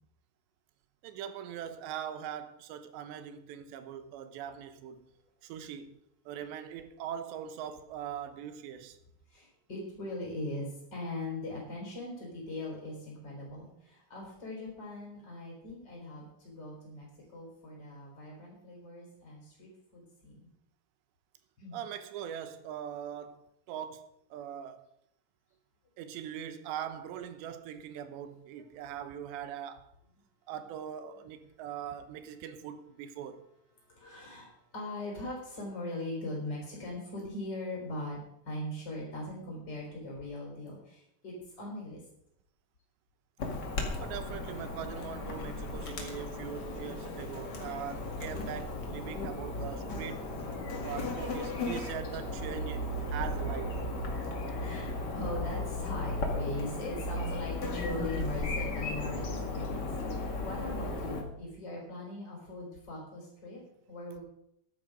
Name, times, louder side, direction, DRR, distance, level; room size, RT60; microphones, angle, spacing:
voice 1, 1.0-5.1 5.4-6.0 6.3-9.0 21.7-24.9 26.0-29.9 30.5-33.4 44.0-50.3 50.8-53.9, right 9 dB, 85° right, 3.1 m, -41 dB
voice 2, 9.3-20.5 21.6-21.8 33.9-42.0 43.4-43.6 54.2-63.6 63.9-64.2, left 2 dB, 25° left, 4.4 m, -40 dB
Chirp tweet / Buzz, 43.4-61.2, left 2 dB, 40° left, 1.5 m, -35 dB
14.0 x 10.5 x 5.2 m
omnidirectional pair, 4.9 m